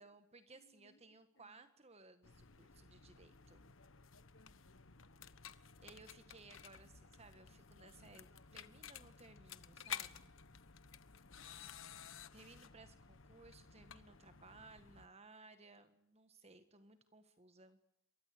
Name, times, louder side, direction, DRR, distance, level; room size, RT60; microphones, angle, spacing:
voice 1, 0.0-3.7 5.8-10.3 12.3-17.8, right 3 dB, 30° right, 10 dB, 1.7 m, -61 dB
voice 2, 0.5-1.6 4.3-5.1 11.0-11.6, left 1 dB, 80° left, 7 dB, 3.8 m, -72 dB
sound 1, 2.2-15.1, left 8 dB, 65° left, 1.3 m, -53 dB
28.0 x 23.5 x 8.6 m, 0.77 s
head